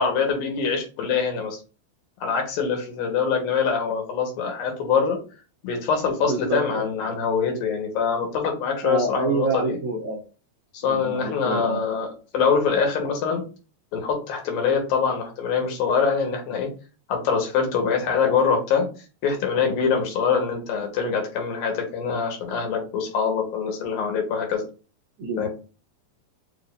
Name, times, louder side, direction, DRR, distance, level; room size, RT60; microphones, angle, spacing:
voice 1, 0.0-1.6 2.2-5.2 5.6-9.8 10.7-12.1 12.3-13.4 13.9-16.7 17.1-18.9 19.2-24.6 25.4-25.5, left 6 dB, 75° left, 3 dB, 2.8 m, -24 dB
voice 2, 6.2-6.9 8.8-10.2 10.8-11.8 25.2-25.5, right 3 dB, 80° right, -1 dB, 1.7 m, -27 dB
7.1 x 2.6 x 2.5 m, 0.34 s
omnidirectional pair, 4.3 m